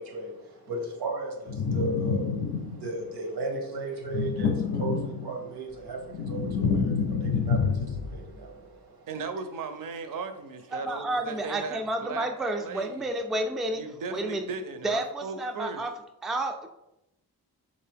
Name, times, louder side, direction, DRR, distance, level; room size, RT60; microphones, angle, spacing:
voice 1, 0.0-9.1, right 2 dB, 90° right, 3 dB, 0.8 m, -36 dB
sound 1, 1.5-3.0 4.0-5.5 5.9-8.3, left 5 dB, 60° left, 0.5 m, -28 dB
voice 2, 9.1-12.3 12.6-13.1 13.8-15.8, right 4 dB, 55° right, 8 dB, 0.5 m, -37 dB
voice 3, 10.7-13.8 14.1-14.5 14.8-15.9 16.2-16.7, right 1 dB, ahead, 4 dB, 0.3 m, -30 dB
3.6 x 2.6 x 3.4 m, 0.86 s
cardioid pair, 75°, 38 cm